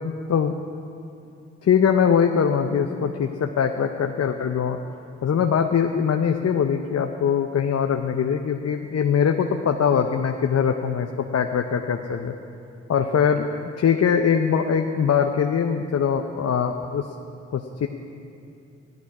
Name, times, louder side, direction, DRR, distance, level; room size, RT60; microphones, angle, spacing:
voice 1, 0.0-0.5 1.6-4.8 5.2-12.3 12.9-13.5 13.8-17.1 17.5-17.9, left 7 dB, 55° left, 5 dB, 0.7 m, -22 dB
16.0 x 12.0 x 4.8 m, 2.6 s
supercardioid pair, 50°, 30 cm